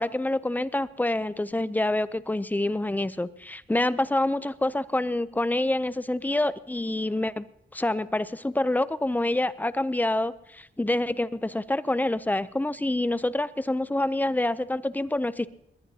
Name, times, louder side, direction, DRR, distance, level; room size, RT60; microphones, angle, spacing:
voice 1, 0.0-7.5 7.7-15.5, left 1 dB, 10° left, 16 dB, 0.5 m, -27 dB
21.0 x 19.0 x 2.8 m, 0.80 s
wide cardioid pair, 135°, 21 cm